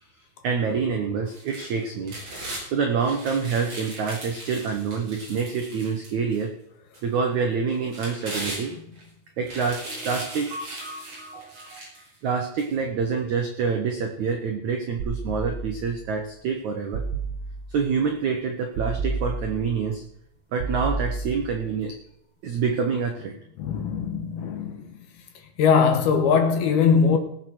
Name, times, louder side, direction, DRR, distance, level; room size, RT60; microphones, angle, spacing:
voice 1, 0.4-2.1 2.7-6.5 7.0-8.7 9.4-11.8 12.2-17.0 17.7-20.0 20.5-22.0 22.4-23.3, right 5 dB, 85° right, 1.6 m, -27 dB
sound 1, 1.3-2.6 3.0-6.4 6.9-7.0 7.7-9.0 9.4-12.1 12.6-12.7, right 1 dB, 35° right, 6.1 m, -38 dB
sound 2, 15.0-16.0 16.9-17.8 18.8-19.8 20.6-21.7, right 3 dB, 55° right, 2.6 m, -31 dB
voice 2, 23.6-25.0 25.6-27.2, left 6 dB, 65° left, 2.8 m, -21 dB
18.5 x 7.4 x 6.3 m
omnidirectional pair, 5.3 m